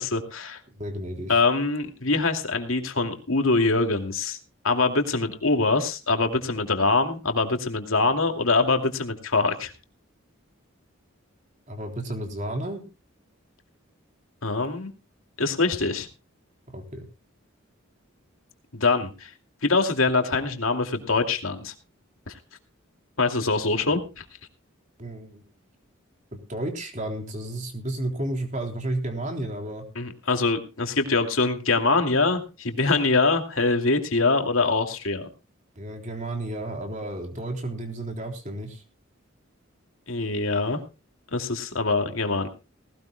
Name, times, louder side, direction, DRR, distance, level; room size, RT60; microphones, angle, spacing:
voice 1, 0.0-0.6 1.3-4.4 4.6-9.7 14.4-14.9 15.4-16.1 18.7-19.3 19.6-21.7 22.3-22.4 23.2-24.2 30.0-35.3 40.1-40.8 41.3-42.5, left 3 dB, 80° left, 5 dB, 2.5 m, -24 dB
voice 2, 0.7-1.4 11.7-12.8 16.7-17.1 25.0-25.4 26.3-29.8 35.8-38.8, right 1 dB, 35° right, 3 dB, 3.6 m, -32 dB
19.0 x 18.0 x 2.2 m, 0.31 s
head